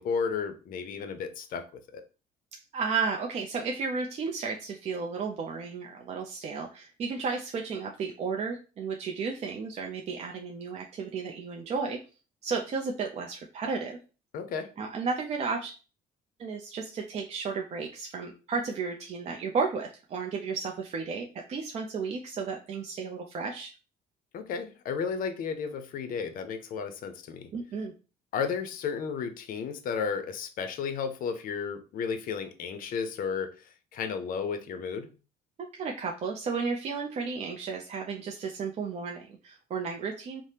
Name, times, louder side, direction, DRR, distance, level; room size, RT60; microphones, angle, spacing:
voice 1, 0.0-1.6 1.9-2.0 14.3-14.7 24.3-27.5 28.3-35.1, left 6 dB, 55° left, 9 dB, 0.5 m, -33 dB
voice 2, 2.7-12.0 12.4-14.0 14.8-15.7 16.4-23.7 27.5-27.9 35.7-40.4, right 5 dB, 40° right, 1 dB, 0.4 m, -33 dB
3.3 x 2.0 x 2.7 m, 0.33 s
cardioid pair, 110°, 17 cm